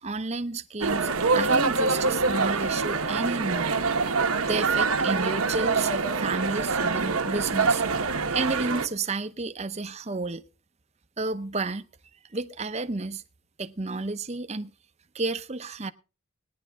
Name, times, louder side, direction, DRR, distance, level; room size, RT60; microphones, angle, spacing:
voice 1, 0.0-3.8 4.4-7.8 8.3-10.4 11.2-11.8 12.3-13.2 13.6-14.7 15.1-15.9, right 3 dB, 30° right, 0.7 m, -31 dB
sound 1, 0.8-8.9, right 4 dB, 80° right, 1.2 m, -25 dB
18.5 x 10.5 x 3.5 m
head